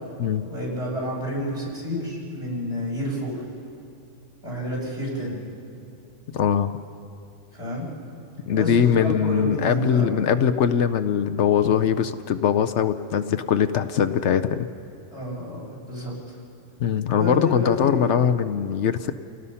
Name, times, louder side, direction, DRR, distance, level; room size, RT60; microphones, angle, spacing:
voice 1, 0.4-3.4 4.4-5.4 7.5-7.9 8.5-10.2 15.1-16.4 17.1-18.2, left 1 dB, 55° right, -4 dB, 6.4 m, -30 dB
voice 2, 6.3-6.7 8.5-14.7 16.8-19.1, left 8 dB, 70° left, 10 dB, 0.9 m, -21 dB
30.0 x 18.0 x 5.6 m, 2.5 s
omnidirectional pair, 1.3 m